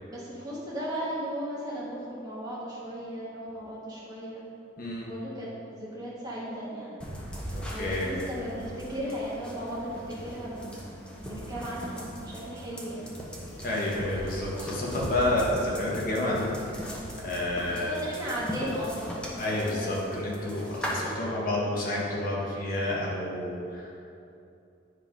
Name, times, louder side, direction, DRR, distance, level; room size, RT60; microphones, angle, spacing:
voice 1, 0.1-4.4 5.1-7.0 7.7-10.9 11.2-13.1 17.7-20.1 20.7-21.0, equal, 20° right, -7 dB, 1.7 m, -36 dB
voice 2, 4.8-5.1 7.5-8.1 13.6-16.9 17.2-17.9 19.4-24.0, left 1 dB, 45° left, -4 dB, 1.2 m, -30 dB
sound 1, 7.0-20.9, equal, 5° left, 0.9 m, -39 dB
9.8 x 3.8 x 5.1 m, 2.7 s
head